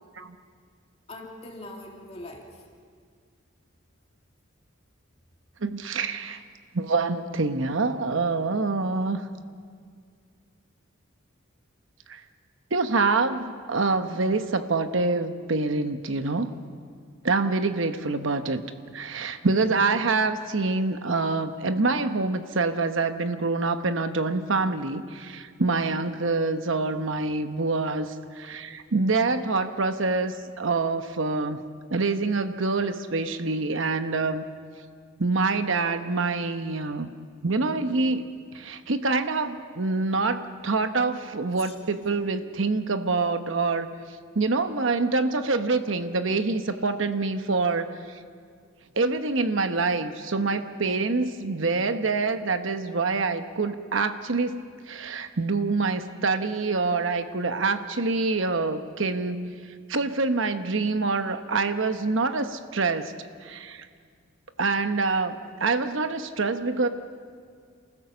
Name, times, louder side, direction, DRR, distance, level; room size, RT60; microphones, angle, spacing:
voice 1, 1.1-2.6 41.5-42.2, left 2 dB, 30° left, 0 dB, 2.7 m, -43 dB
voice 2, 5.6-6.4 6.7-9.2 12.1-12.2 12.7-16.5 17.2-18.6 18.9-31.6 31.9-34.4 35.2-37.1 37.4-38.2 38.5-43.9 44.3-47.9 48.9-54.6 54.9-59.5 59.9-63.1 63.4-63.9 64.6-66.9, right 3 dB, 70° right, 9 dB, 1.0 m, -26 dB
28.0 x 15.5 x 7.0 m, 2.1 s
head